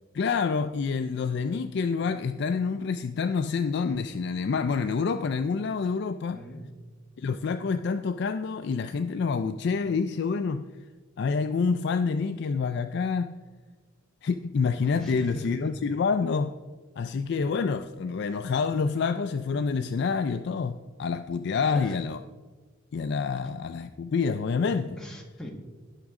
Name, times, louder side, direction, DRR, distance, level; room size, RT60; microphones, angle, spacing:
voice 1, 0.1-6.4 7.2-10.6 11.2-13.3 14.2-16.5 17.0-22.2 22.9-25.0, left 5 dB, 55° left, 9 dB, 0.3 m, -27 dB
voice 2, 6.3-6.6 14.9-15.8 21.6-22.0 25.0-25.5, equal, 5° left, -1 dB, 1.3 m, -39 dB
17.5 x 6.0 x 3.6 m, 1.3 s
head